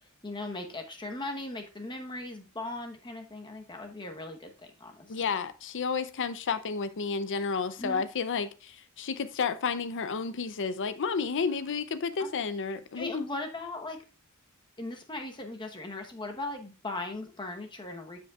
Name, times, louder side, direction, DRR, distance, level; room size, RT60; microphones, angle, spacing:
voice 1, 0.2-4.5 4.8-5.2 7.8-8.0 12.2-12.3 12.9-14.0 14.8-18.2, left 2 dB, 20° left, 1.0 m, -38 dB
voice 2, 5.1-13.3, left 5 dB, 55° left, 0.6 m, -31 dB
13.0 x 5.3 x 2.4 m
head